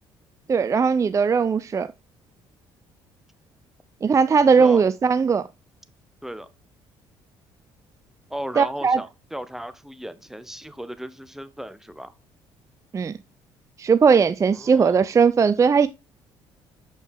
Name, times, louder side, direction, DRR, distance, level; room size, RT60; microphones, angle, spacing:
voice 1, 0.5-1.9 4.0-5.4 8.6-9.0 12.9-13.1 13.8-15.9, right 5 dB, 30° right, 0.4 m, -18 dB
voice 2, 8.3-12.1 14.5-15.1, equal, 5° right, 0.7 m, -36 dB
6.5 x 5.3 x 3.6 m
supercardioid pair, 65°, 11 cm